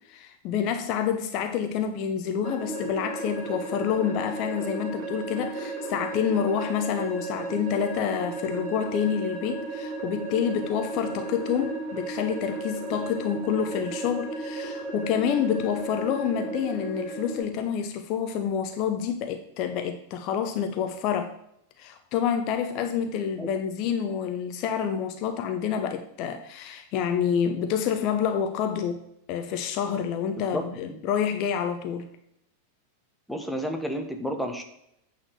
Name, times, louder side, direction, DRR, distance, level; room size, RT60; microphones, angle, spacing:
voice 1, 0.1-21.3 21.8-32.1, left 8 dB, 40° left, 7 dB, 0.8 m, -28 dB
sound 1, 2.4-17.4, right 3 dB, 35° right, 2.7 m, -34 dB
voice 2, 33.3-34.6, equal, ahead, 3 dB, 1.2 m, -31 dB
8.9 x 4.3 x 6.7 m, 0.76 s
figure-of-eight pair, 90°, 0 cm